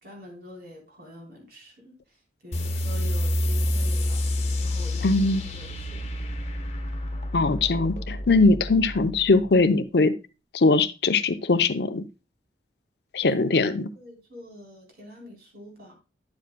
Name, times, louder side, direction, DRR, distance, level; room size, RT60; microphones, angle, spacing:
voice 1, 0.0-2.2 2.4-4.3 4.6-5.1 5.5-6.0 13.2-13.5 13.9-15.9, left 1 dB, 60° right, 0 dB, 3.7 m, -45 dB
sound 1, 2.5-9.6, left 1 dB, 35° left, 1.3 m, -28 dB
voice 2, 5.0-5.4 7.3-10.1 10.5-12.0 13.1-13.9, left 3 dB, 65° left, 11 dB, 0.7 m, -21 dB
10.5 x 7.6 x 2.2 m, 0.29 s
head